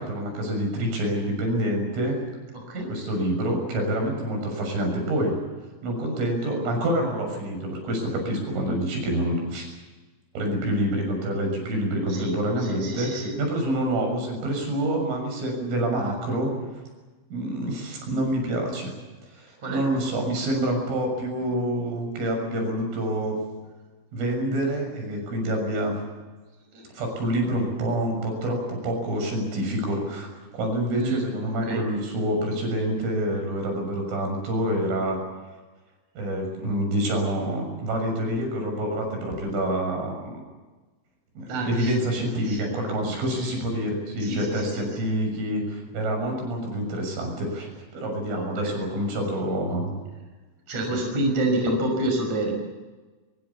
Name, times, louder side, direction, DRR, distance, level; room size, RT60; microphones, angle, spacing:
voice 1, 0.0-2.2 2.9-5.4 5.8-9.8 10.4-16.5 17.3-18.9 19.3-23.4 24.1-25.9 26.9-35.2 36.2-40.4 41.4-49.9 50.9-51.0, right 1 dB, 85° right, 3 dB, 9.2 m, -27 dB
voice 2, 2.5-2.9 12.1-12.3 12.7-13.3 19.6-19.8 26.7-26.8 30.9-31.2 31.7-31.8 41.5-42.6 44.2-44.5 48.3-48.8 50.7-52.5, right 1 dB, 35° right, 3 dB, 6.9 m, -28 dB
24.0 x 23.0 x 7.2 m, 1.2 s
omnidirectional pair, 5.6 m